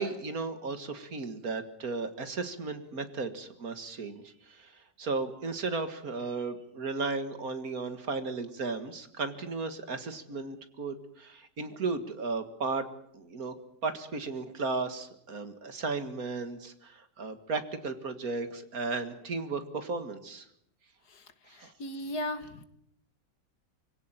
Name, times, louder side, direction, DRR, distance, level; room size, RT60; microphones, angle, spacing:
voice 1, 0.0-4.7 5.0-12.9 13.1-13.5 13.8-20.4 21.5-21.7, right 4 dB, 55° right, 9 dB, 2.2 m, -35 dB
voice 2, 21.5-22.7, left 1 dB, 65° left, 11 dB, 2.0 m, -37 dB
25.5 x 17.0 x 8.9 m, 0.74 s
omnidirectional pair, 1.9 m